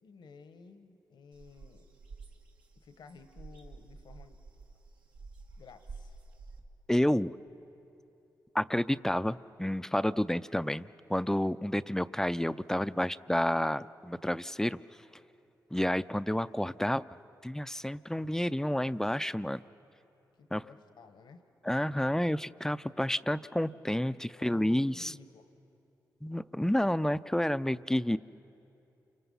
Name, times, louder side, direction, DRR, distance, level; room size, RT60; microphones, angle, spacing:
voice 1, 0.0-1.9 2.7-4.4 5.6-6.2 20.4-21.4 24.3-25.5, left 5 dB, 75° left, 9 dB, 1.3 m, -53 dB
sound 1, 1.3-6.6, right 4 dB, 85° right, 1.9 m, -50 dB
voice 2, 6.9-7.3 8.5-14.8 15.7-17.1 17.4-19.6 20.5-20.6 21.6-25.1 26.2-28.2, left 1 dB, 5° left, 14 dB, 0.5 m, -30 dB
28.5 x 24.5 x 5.6 m, 2.8 s
supercardioid pair, 45°, 8 cm